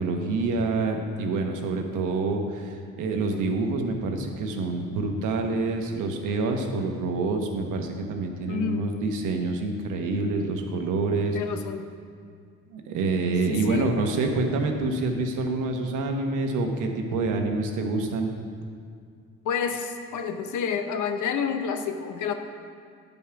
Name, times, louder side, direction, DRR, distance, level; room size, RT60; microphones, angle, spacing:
voice 1, 0.0-11.4 12.7-18.3, right 3 dB, 85° right, 3 dB, 1.1 m, -27 dB
voice 2, 8.5-8.9 11.3-11.9 13.5-14.0 19.4-22.3, left 7 dB, 80° left, 6 dB, 0.9 m, -29 dB
9.6 x 5.4 x 5.8 m, 2.2 s
cardioid pair, 90°, 30 cm